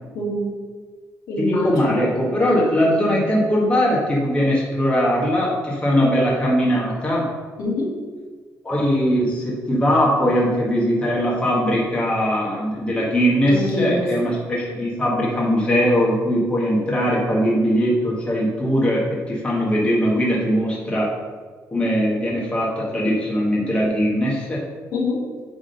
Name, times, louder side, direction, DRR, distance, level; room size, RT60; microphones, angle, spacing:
voice 1, 0.2-0.5 1.3-1.9 7.6-7.9 13.4-14.1 24.9-25.2, left 1 dB, 80° left, -3 dB, 2.1 m, -24 dB
voice 2, 1.4-7.3 8.6-21.1 21.7-24.6, equal, 15° left, -5 dB, 1.6 m, -20 dB
8.1 x 3.8 x 5.4 m, 1.5 s
cardioid pair, 165°, 6 cm